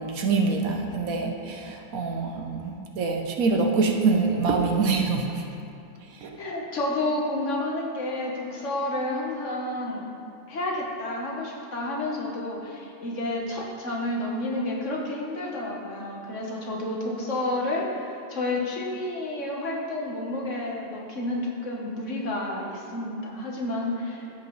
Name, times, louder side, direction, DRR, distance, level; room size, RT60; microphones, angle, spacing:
voice 1, 0.0-5.3 6.2-6.3, right 4 dB, 70° right, 2 dB, 1.2 m, -25 dB
voice 2, 6.4-10.0 10.5-24.2, left 1 dB, 55° left, -2 dB, 1.4 m, -30 dB
14.5 x 5.8 x 3.1 m, 2.7 s
omnidirectional pair, 1.6 m